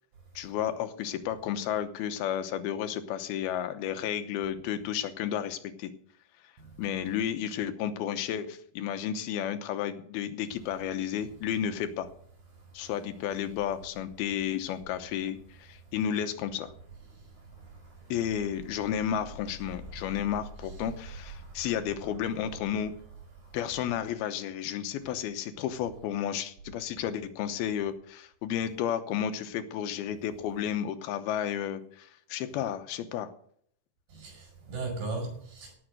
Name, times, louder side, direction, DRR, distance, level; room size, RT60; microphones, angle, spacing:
voice 1, 0.4-5.9 6.8-12.1 12.7-16.7 18.1-22.9 23.5-33.3, left 9 dB, 85° left, 2.9 m, -32 dB
voice 2, 17.2-18.2 19.9-20.1 21.4-21.7 23.4-23.6 34.1-35.7, right 3 dB, 65° right, 6.9 m, -40 dB
17.5 x 7.2 x 6.5 m
omnidirectional pair, 4.3 m